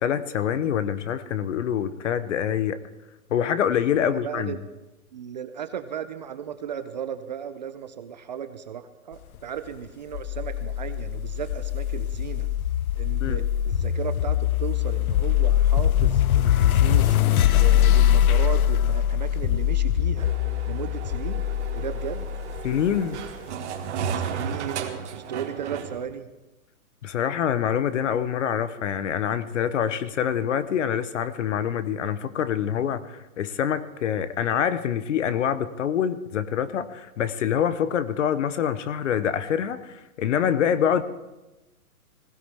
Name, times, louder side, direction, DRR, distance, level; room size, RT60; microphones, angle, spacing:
voice 1, 0.0-2.8 3.3-4.6 13.2-13.4 22.6-23.2 27.0-41.0, left 9 dB, 55° left, 14 dB, 1.0 m, -25 dB
voice 2, 3.9-4.6 5.1-12.5 12.9-20.3 20.7-21.5 21.7-22.3 24.1-26.3, right 9 dB, 30° right, 10 dB, 0.5 m, -35 dB
sound 1, 10.1-23.3, left 11 dB, 70° left, 0.7 m, -22 dB
sound 2, 20.2-26.0, right 7 dB, 50° right, 1.8 m, -34 dB
20.0 x 16.5 x 3.5 m, 1.0 s
hypercardioid pair, 155°, 44 cm